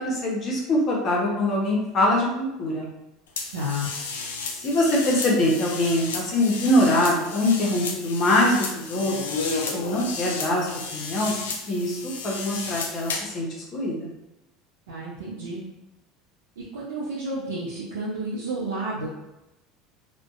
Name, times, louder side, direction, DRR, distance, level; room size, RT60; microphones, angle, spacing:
voice 1, 0.0-2.9 4.5-9.5 9.7-11.4 11.7-13.5 13.7-14.1, left 1 dB, 45° left, -3 dB, 0.7 m, -23 dB
sound 1, 3.4-13.4, left 4 dB, 85° left, 0.3 m, -33 dB
voice 2, 3.5-3.9 14.9-15.6 16.6-19.1, right 1 dB, 80° right, -7 dB, 0.5 m, -31 dB
2.5 x 2.1 x 2.4 m, 0.95 s
hypercardioid pair, 80°, 0 cm